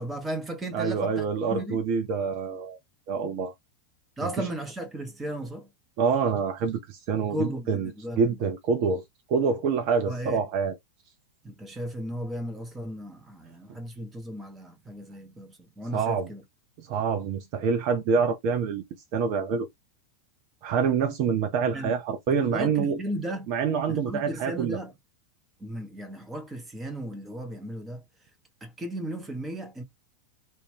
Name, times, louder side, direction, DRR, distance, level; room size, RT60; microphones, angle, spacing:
voice 1, 0.0-1.8 4.2-5.7 7.3-8.4 10.0-10.4 11.4-16.4 21.7-21.9 22.3-23.5 23.9-24.9 25.6-28.0 28.6-29.8, right 1 dB, 10° right, 0.9 m, -35 dB
voice 2, 0.7-2.8 3.1-3.5 6.0-7.9 8.2-9.0 9.3-10.8 15.9-16.3 16.8-18.8 19.1-19.7 20.6-23.0 23.5-24.8, right 5 dB, 45° right, 0.5 m, -26 dB
2.5 x 2.1 x 3.3 m
figure-of-eight pair, 90°, 0 cm